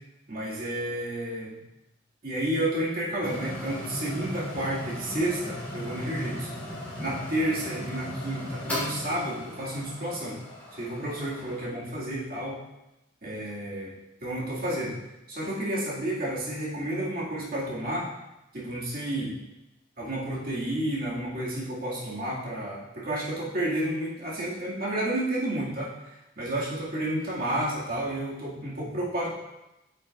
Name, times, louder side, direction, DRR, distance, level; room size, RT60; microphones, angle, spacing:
voice 1, 0.3-1.6 2.2-6.5 7.0-10.4 10.7-12.6 13.2-13.9 14.2-15.0 15.3-18.1 18.5-19.4 20.0-29.3, right 1 dB, 50° right, -6 dB, 2.3 m, -31 dB
sound 1, 3.2-11.6, left 1 dB, 10° left, 2.8 m, -37 dB
9.7 x 6.6 x 2.5 m, 0.95 s
head